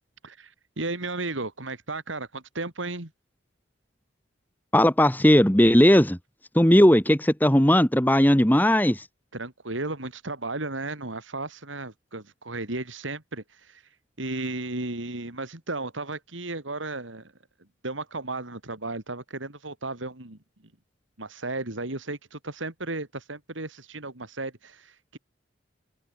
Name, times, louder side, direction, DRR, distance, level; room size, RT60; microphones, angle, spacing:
voice 1, 0.2-3.1 9.3-17.3 17.8-20.4 21.2-25.2, right 2 dB, 85° right, 3.3 m, -34 dB
voice 2, 4.7-6.2 6.5-9.0, equal, 10° left, 2.0 m, -18 dB
open air
head